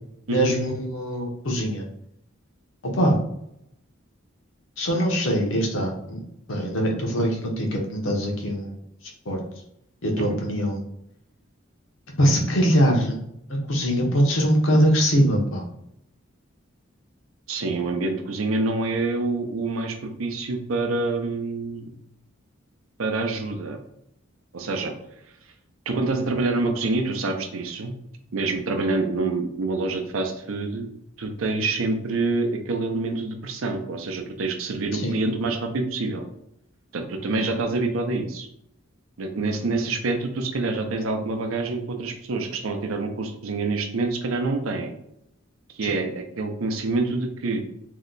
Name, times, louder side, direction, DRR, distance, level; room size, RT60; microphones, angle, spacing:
voice 1, 0.3-1.8 2.8-3.2 4.8-6.2 6.5-8.8 9.3-9.4 10.0-10.8 12.2-13.2 13.5-15.6 34.9-35.2 45.8-45.9, equal, 75° left, 0 dB, 0.8 m, -22 dB
voice 2, 17.5-21.9 23.0-23.8 24.5-24.9 25.9-27.9 28.3-30.9 31.2-36.2 36.9-38.5 39.2-44.9 45.8-47.6, right 3 dB, 85° right, 5 dB, 0.5 m, -26 dB
2.8 x 2.2 x 3.7 m, 0.78 s
head